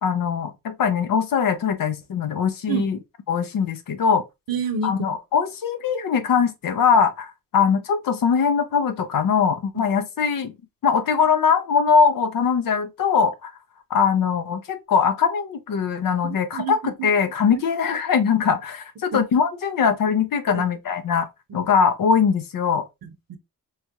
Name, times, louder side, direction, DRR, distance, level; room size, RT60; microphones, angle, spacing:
voice 1, 0.0-3.0 3.3-4.2 4.8-10.5 10.8-13.5 13.9-22.9, left 6 dB, 70° left, 0.6 m, -21 dB
voice 2, 4.5-4.9 16.2-17.1 17.5-17.6 20.5-20.7 21.5-21.6 23.0-23.4, right 5 dB, 85° right, 0.7 m, -29 dB
3.3 x 2.3 x 2.7 m
cardioid pair, 80°, 34 cm